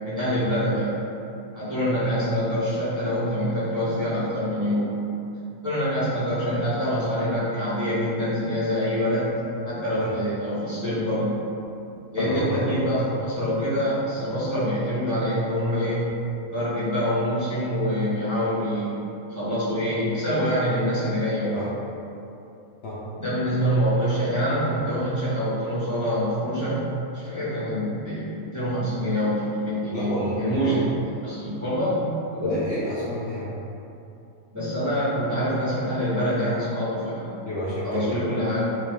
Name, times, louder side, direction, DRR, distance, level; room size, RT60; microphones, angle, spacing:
voice 1, 0.0-1.0 1.5-5.0 5.6-9.4 9.6-11.3 12.1-16.1 16.5-18.9 19.3-21.6 23.2-30.1 30.4-30.8 31.2-32.6 34.5-37.4 37.8-38.7, equal, 15° right, -11 dB, 0.8 m, -25 dB
voice 2, 12.2-12.6 21.5-21.7 22.8-23.0 29.9-30.8 32.4-33.5 37.5-38.1, left 1 dB, 60° left, -9 dB, 0.7 m, -30 dB
3.4 x 2.7 x 3.3 m, 2.7 s
omnidirectional pair, 1.5 m